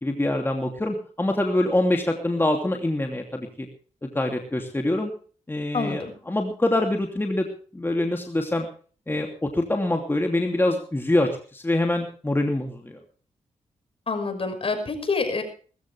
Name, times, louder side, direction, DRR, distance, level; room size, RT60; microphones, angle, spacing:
voice 1, 0.0-3.7 4.0-5.1 5.5-7.5 7.7-8.7 9.1-13.0, left 1 dB, 15° left, 3 dB, 2.9 m, -25 dB
voice 2, 5.7-6.1 14.1-15.4, left 4 dB, 50° left, 7 dB, 5.9 m, -27 dB
20.0 x 15.0 x 3.5 m, 0.42 s
cardioid pair, 65°, 13 cm